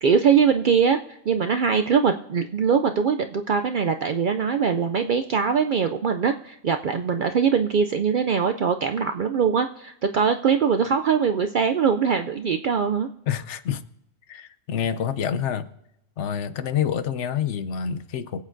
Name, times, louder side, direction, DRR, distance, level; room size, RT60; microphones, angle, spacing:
voice 1, 0.0-13.1, right 6 dB, 60° right, 0.5 m, -22 dB
voice 2, 13.3-13.8 14.3-15.7 16.2-18.4, left 8 dB, 70° left, 1.0 m, -27 dB
24.5 x 8.5 x 2.6 m
omnidirectional pair, 1.3 m